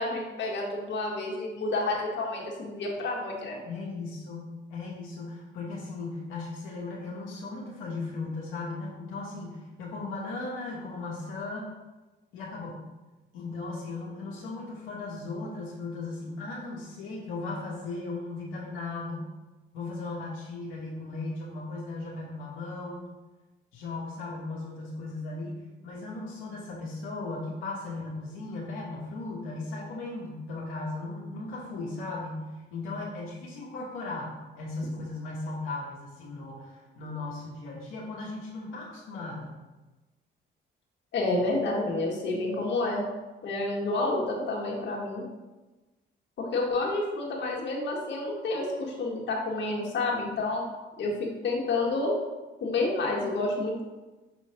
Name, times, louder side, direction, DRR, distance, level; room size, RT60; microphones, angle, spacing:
voice 1, 0.0-3.6 41.1-43.0 43.4-45.2 46.4-50.7 51.0-52.1 52.6-53.8, left 2 dB, 65° left, -2 dB, 1.7 m, -29 dB
voice 2, 3.6-11.7 12.3-12.8 13.3-19.3 19.7-23.0 23.7-39.5, left 3 dB, 90° left, -5 dB, 1.3 m, -37 dB
6.3 x 3.1 x 5.6 m, 1.2 s
cardioid pair, 90°, 20 cm